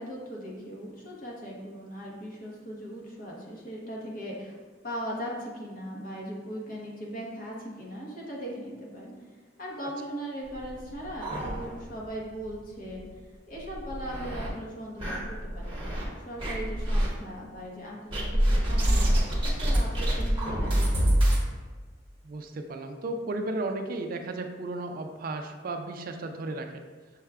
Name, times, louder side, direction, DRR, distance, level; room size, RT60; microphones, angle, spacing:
voice 1, 0.0-4.5 4.8-9.1 9.6-13.1 13.5-15.8 16.2-21.2, equal, 45° left, -3 dB, 1.0 m, -39 dB
sound 1, 10.5-12.1 12.4-12.5 12.9-13.0 13.6-14.5 15.0-16.0 16.4-17.1 18.1-21.4, equal, 25° right, 1.0 m, -26 dB
voice 2, 22.2-26.7, right 2 dB, 50° right, 5 dB, 0.3 m, -34 dB
6.3 x 2.2 x 3.5 m, 1.4 s
head